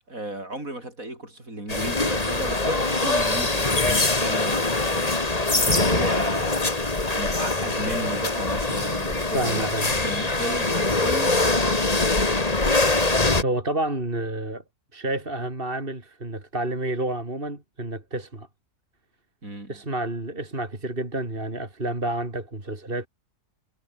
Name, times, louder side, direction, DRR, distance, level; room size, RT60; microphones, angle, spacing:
voice 1, 0.0-6.8 7.2-11.9 19.4-19.8, right 1 dB, 55° right, 8.3 m, -34 dB
sound 1, 1.7-13.4, left 2 dB, 25° left, 2.3 m, -23 dB
voice 2, 9.3-10.0 12.8-14.6 14.9-18.5 19.7-23.1, right 2 dB, 35° right, 4.4 m, -30 dB
omnidirectional pair, 1.7 m